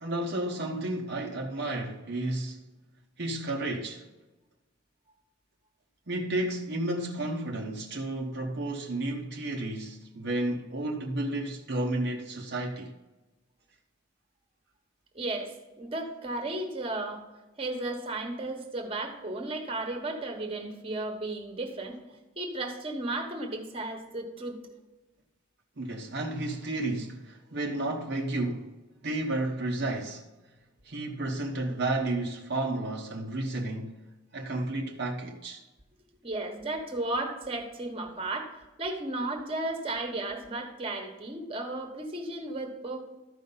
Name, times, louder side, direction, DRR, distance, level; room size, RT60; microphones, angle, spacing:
voice 1, 0.0-2.6 3.2-4.1 6.1-13.0 25.8-28.7 29.0-30.3 30.8-34.0 34.3-35.6, right 2 dB, 55° right, 0.8 m, -32 dB
voice 2, 15.1-17.2 17.6-22.0 22.4-24.6 36.2-43.0, right 2 dB, 30° right, 1.3 m, -34 dB
13.5 x 5.4 x 3.9 m
head